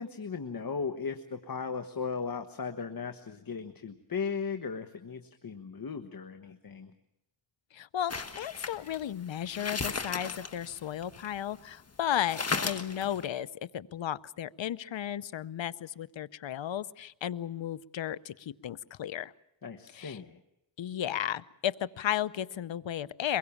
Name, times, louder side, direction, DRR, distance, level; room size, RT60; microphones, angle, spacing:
voice 1, 0.0-6.9 19.6-20.4, left 5 dB, 50° left, 6 dB, 1.4 m, -37 dB
voice 2, 7.7-19.3 19.9-20.2 20.8-23.4, left 10 dB, 85° left, 16 dB, 0.8 m, -34 dB
sound 1, 8.1-11.6 12.0-12.1 12.3-13.2, left 4 dB, 35° left, 1.6 m, -35 dB
23.5 x 22.0 x 7.2 m, 0.81 s
wide cardioid pair, 80°, 44 cm